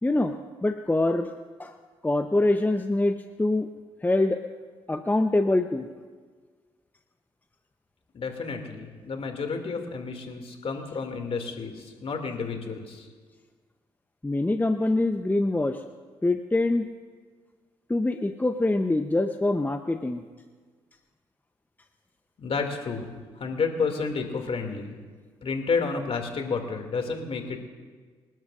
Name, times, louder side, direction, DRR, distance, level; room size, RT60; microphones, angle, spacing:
voice 1, 0.0-0.4 0.6-1.3 1.6-1.7 2.0-3.7 4.0-4.4 4.9-5.9 14.2-15.8 16.2-16.9 17.9-20.2, left 2 dB, 15° left, 7 dB, 0.8 m, -24 dB
voice 2, 8.1-13.1 22.4-25.0 25.4-27.6, left 4 dB, 50° left, 4 dB, 2.5 m, -31 dB
27.5 x 12.0 x 2.6 m, 1.5 s
hypercardioid pair, 45°, 12 cm